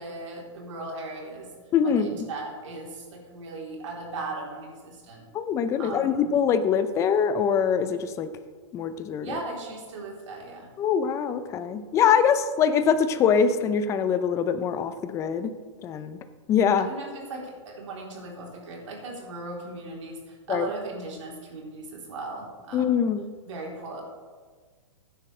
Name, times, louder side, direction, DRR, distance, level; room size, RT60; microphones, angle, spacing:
voice 1, 0.0-1.5 1.8-5.3 5.8-6.4 9.2-10.7 16.8-23.1 23.5-24.0, right 3 dB, 75° right, -2 dB, 3.6 m, -38 dB
voice 2, 1.7-2.3 5.3-8.3 8.7-9.4 10.8-15.5 15.8-16.2 16.5-16.9 20.5-20.7 22.7-23.3, left 7 dB, 20° left, 11 dB, 0.6 m, -23 dB
15.5 x 10.0 x 3.3 m, 1.5 s
hypercardioid pair, 150°, 16 cm